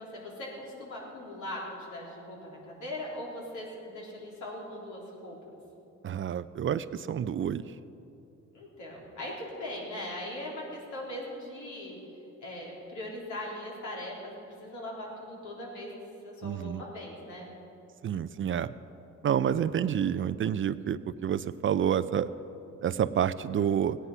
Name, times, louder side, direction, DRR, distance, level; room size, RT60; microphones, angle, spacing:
voice 1, 0.0-5.4 8.5-12.0 12.4-15.9 16.2-17.5, left 1 dB, 75° left, -3 dB, 3.6 m, -40 dB
voice 2, 6.0-7.6 16.4-16.8 18.0-18.7 19.2-22.3 22.8-24.0, right 9 dB, 45° right, 14 dB, 0.4 m, -28 dB
16.5 x 9.9 x 5.6 m, 2.8 s
cardioid pair, 90°, 30 cm